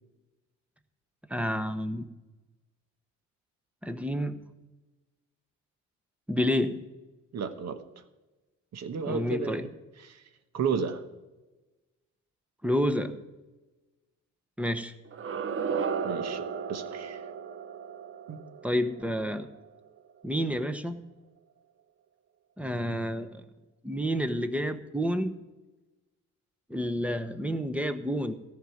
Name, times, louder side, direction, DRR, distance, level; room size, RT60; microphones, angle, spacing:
voice 1, 1.3-2.1 3.8-4.4 6.3-6.8 9.1-9.6 12.6-13.2 14.6-14.9 18.6-19.5 20.2-21.0 22.6-23.4 23.8-25.3 26.7-28.3, equal, 5° right, 1.0 m, -29 dB
voice 2, 7.3-7.8 8.7-9.7 10.1-10.2 10.5-11.0 16.0-16.4 16.7-17.2 18.3-18.6, right 6 dB, 60° right, 1.2 m, -32 dB
sound 1, 15.1-20.0, right 6 dB, 45° right, 0.8 m, -35 dB
14.0 x 5.2 x 9.4 m
cardioid pair, 90°, 30 cm